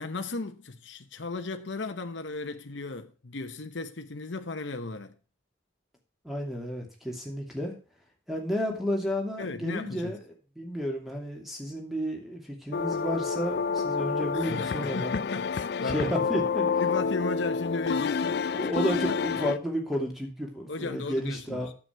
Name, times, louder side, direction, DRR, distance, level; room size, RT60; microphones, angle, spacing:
voice 1, 0.0-5.1 9.4-10.2 14.3-16.3 16.8-19.2 20.7-21.7, left 3 dB, 70° left, 0.9 m, -36 dB
voice 2, 6.2-7.7 8.3-10.2 10.6-15.1 15.9-16.8 18.5-21.7, equal, ahead, 2.6 m, -32 dB
sound 1, 12.7-19.6, left 5 dB, 55° left, 0.4 m, -29 dB
9.5 x 7.9 x 4.6 m
head